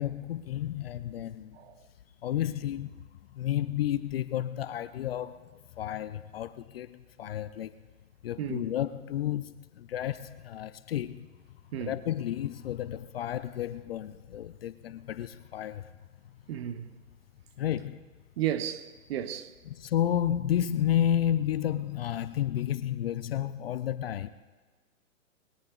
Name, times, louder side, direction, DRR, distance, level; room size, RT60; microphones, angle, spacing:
voice 1, 0.0-1.6 2.2-3.0 3.3-7.8 8.2-11.3 11.8-15.9 17.6-18.0 19.8-24.3, left 11 dB, 45° left, 0.5 m, -31 dB
voice 2, 8.4-8.7 11.7-12.0 16.5-16.9 18.4-19.5, right 10 dB, 45° right, 0.9 m, -33 dB
27.5 x 21.0 x 2.4 m
hypercardioid pair, 130°, 42 cm